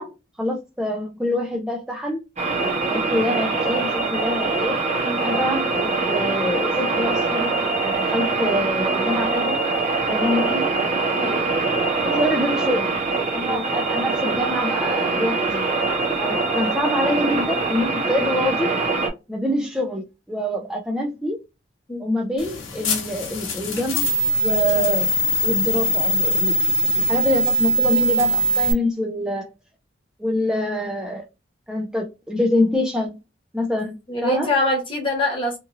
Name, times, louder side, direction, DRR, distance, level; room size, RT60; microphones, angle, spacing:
voice 1, 0.0-2.2 2.9-4.8 5.2-9.6 10.1-10.7 12.0-13.0 13.3-15.6 16.2-18.7 19.3-21.4 22.0-24.1 24.4-25.1 25.4-26.6 27.0-29.5 30.2-31.3 31.7-33.2 33.5-34.5, left 1 dB, 5° right, 0.4 m, -25 dB
sound 1, 2.4-19.1, right 3 dB, 35° right, 0.8 m, -23 dB
voice 2, 11.2-11.5 13.5-13.7 21.9-22.0 34.1-35.6, left 1 dB, 25° left, 1.1 m, -24 dB
sound 2, 22.4-28.7, right 1 dB, 80° left, 0.9 m, -21 dB
2.8 x 2.6 x 2.5 m
head